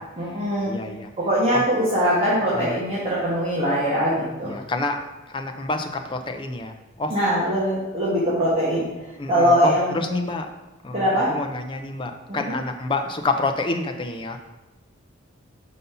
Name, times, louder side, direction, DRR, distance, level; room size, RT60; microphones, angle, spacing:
voice 1, 0.2-0.7 1.2-4.6 7.1-8.8 9.3-10.2 10.9-11.3 12.3-12.5, equal, 30° right, -8 dB, 1.2 m, -22 dB
voice 2, 0.7-1.1 1.5-1.6 2.5-2.7 4.4-5.0 5.3-7.1 9.2-10.5 10.8-14.4, left 2 dB, 25° left, 5 dB, 0.4 m, -28 dB
5.4 x 4.1 x 5.5 m, 1.1 s
head